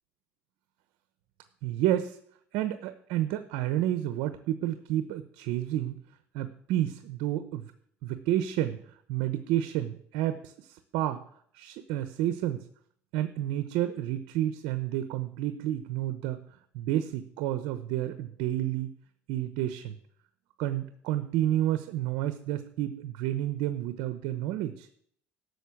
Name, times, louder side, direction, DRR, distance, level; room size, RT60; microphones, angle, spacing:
voice 1, 1.6-2.2 2.5-6.0 6.3-7.7 8.0-8.8 9.1-11.2 11.5-12.6 13.1-16.4 16.7-18.9 19.3-19.9 20.6-24.9, right 13 dB, 80° right, 10 dB, 0.9 m, -30 dB
12.5 x 6.6 x 8.5 m, 0.64 s
cardioid pair, 110°, 5 cm